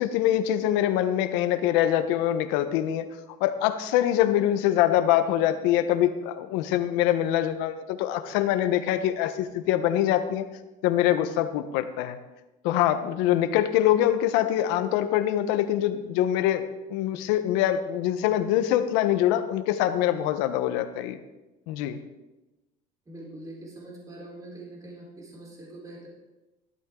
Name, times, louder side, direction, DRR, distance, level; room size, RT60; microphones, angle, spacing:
voice 1, 0.0-3.1 3.4-10.4 10.8-12.2 12.6-16.6 16.9-21.2 21.7-22.0, left 12 dB, 80° left, 10 dB, 1.1 m, -24 dB
voice 2, 23.1-26.1, right 1 dB, 20° right, -3 dB, 4.2 m, -43 dB
15.0 x 12.5 x 3.8 m, 1.1 s
cardioid pair, 115°, 18 cm